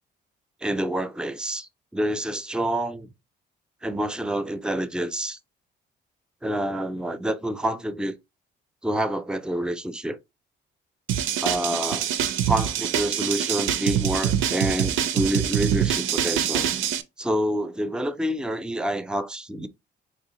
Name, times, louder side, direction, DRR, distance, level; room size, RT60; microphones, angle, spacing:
voice 1, 0.6-3.1 3.8-5.4 6.4-8.2 8.8-10.2 11.4-12.1 12.5-16.7 17.2-19.7, right 1 dB, 5° right, 0.4 m, -27 dB
sound 1, 11.1-17.0, right 9 dB, 85° right, 0.5 m, -25 dB
3.8 x 3.1 x 2.9 m
cardioid pair, 90°, 20 cm